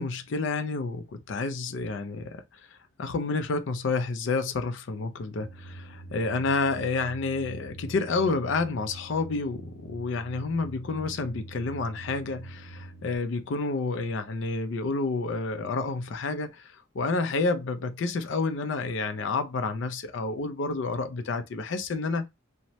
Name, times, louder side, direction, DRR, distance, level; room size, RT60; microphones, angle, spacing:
voice 1, 0.0-2.4 3.0-22.3, left 3 dB, 65° left, 0.4 m, -29 dB
sound 1, 5.4-13.2, right 2 dB, 65° right, 0.8 m, -44 dB
3.0 x 2.1 x 2.7 m
head